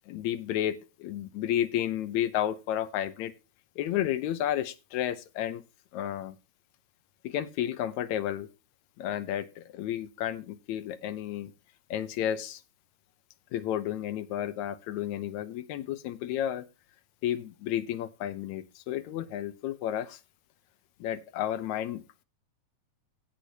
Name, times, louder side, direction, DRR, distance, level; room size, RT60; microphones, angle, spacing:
voice 1, 0.1-0.8 1.0-3.3 3.8-5.6 5.9-6.3 7.3-8.5 9.0-9.5 9.8-11.5 11.9-12.6 13.5-16.6 17.2-20.1 21.0-22.0, left 11 dB, 80° left, 13 dB, 2.1 m, -31 dB
16.5 x 6.3 x 2.8 m, 0.29 s
omnidirectional pair, 3.3 m